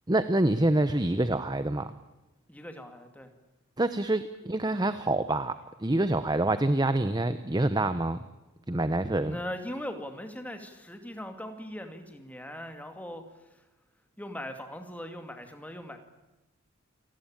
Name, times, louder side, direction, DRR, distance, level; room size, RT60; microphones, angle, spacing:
voice 1, 0.1-1.9 3.8-5.5 5.8-8.2 8.7-9.4, right 1 dB, 20° right, 12 dB, 0.8 m, -26 dB
voice 2, 2.5-3.3 9.2-13.6 14.2-16.0, equal, 5° left, 6 dB, 2.3 m, -40 dB
28.5 x 19.0 x 8.9 m, 1.0 s
head